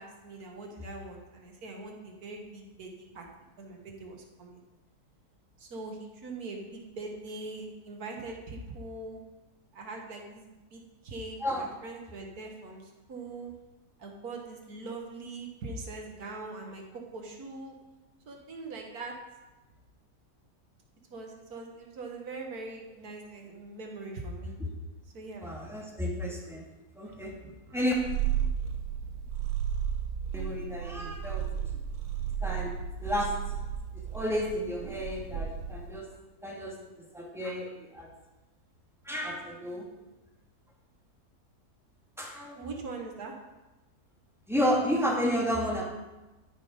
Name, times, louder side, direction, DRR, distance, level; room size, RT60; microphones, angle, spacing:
voice 1, 0.0-3.3 3.6-4.6 5.6-9.2 9.7-13.5 14.0-17.8 18.3-19.1 21.1-24.6 25.1-25.5 27.1-27.4 27.7-27.8 42.6-43.3, right 3 dB, 70° right, 1 dB, 2.0 m, -42 dB
voice 2, 25.4-26.6 26.9-27.3 27.7-27.9 30.3-31.5 32.4-32.7 33.0-33.3 34.1-36.1 36.4-36.8 37.1-38.1 39.1-39.9 42.2-42.6 44.5-45.9, equal, ahead, -3 dB, 1.8 m, -31 dB
Purr, 28.0-36.0, right 9 dB, 85° right, 1.3 m, -33 dB
13.0 x 5.6 x 5.1 m, 1.1 s
omnidirectional pair, 1.7 m